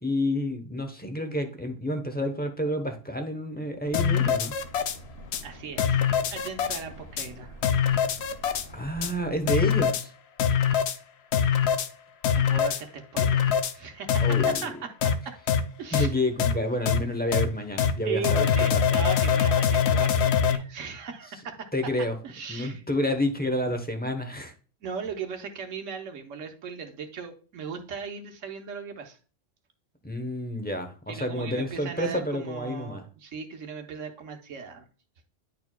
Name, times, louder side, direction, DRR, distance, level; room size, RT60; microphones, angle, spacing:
voice 1, 0.0-4.5 8.7-10.1 14.2-14.7 15.9-18.4 18.7-19.0 21.7-22.2 22.5-24.5 30.0-33.0, left 1 dB, 10° left, 6 dB, 0.6 m, -29 dB
sound 1, 3.8-9.9, equal, 85° left, 2.3 m, -46 dB
sound 2, 3.9-5.0 5.3-5.4 5.8-6.8 7.2-7.3 7.6-8.7 9.0-9.1 9.5-10.0 10.4-11.0 11.3-11.9 12.2-12.8 13.2-13.7 14.1-14.7 15.0-15.1 15.5-15.6 15.9-16.1 16.4-16.5 16.9-17.0 17.3-17.4 17.8-17.9 18.2-20.6, left 7 dB, 65° left, 0.8 m, -23 dB
voice 2, 5.4-6.0 6.3-7.5 12.4-14.4 14.6-14.9 15.2-15.3 15.8-16.1 18.0-21.7 22.2-22.8 24.8-29.2 31.1-34.8, right 5 dB, 75° right, 5 dB, 1.3 m, -38 dB
10.5 x 4.5 x 2.2 m, 0.37 s
omnidirectional pair, 1.3 m